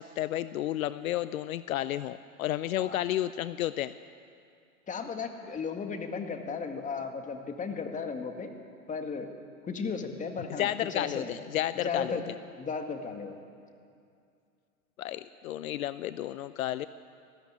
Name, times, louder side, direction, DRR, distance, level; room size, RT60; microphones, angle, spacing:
voice 1, 0.0-3.9 10.6-12.2 15.0-16.9, left 13 dB, 70° left, 15 dB, 0.7 m, -32 dB
voice 2, 4.9-8.5 8.9-9.3 9.7-11.3 11.8-12.2 12.6-13.4, left 5 dB, 15° left, 5 dB, 2.0 m, -35 dB
20.0 x 14.0 x 9.6 m, 2.4 s
hypercardioid pair, 115°, 43 cm